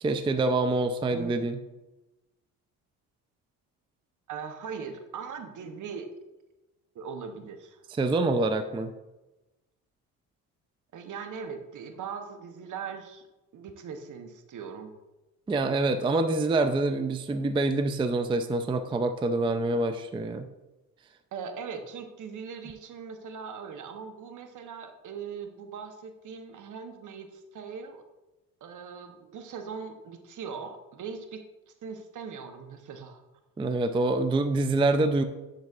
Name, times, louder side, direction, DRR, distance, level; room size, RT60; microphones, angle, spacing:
voice 1, 0.0-1.6 8.0-8.9 15.5-20.5 33.6-35.2, right 2 dB, 15° right, 8 dB, 0.4 m, -26 dB
voice 2, 4.3-6.1 6.9-7.8 10.9-13.3 13.5-14.9 21.3-28.0 28.6-31.4 31.8-33.2, right 6 dB, 55° right, 7 dB, 0.9 m, -40 dB
10.5 x 4.0 x 2.4 m, 1.0 s
supercardioid pair, 70°, 37 cm